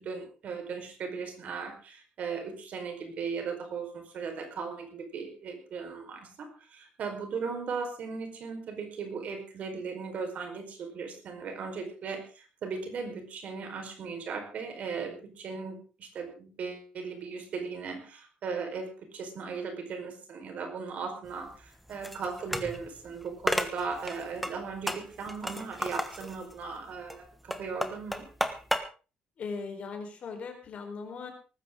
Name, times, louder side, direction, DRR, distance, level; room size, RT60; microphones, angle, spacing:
voice 1, 0.0-28.3, right 5 dB, 50° right, 5 dB, 4.8 m, -37 dB
sound 1, 21.3-28.8, equal, ahead, 1.4 m, -34 dB
voice 2, 29.4-31.3, left 4 dB, 45° left, 5 dB, 4.5 m, -38 dB
19.0 x 15.0 x 3.9 m, 0.35 s
cardioid pair, 155°, 3 cm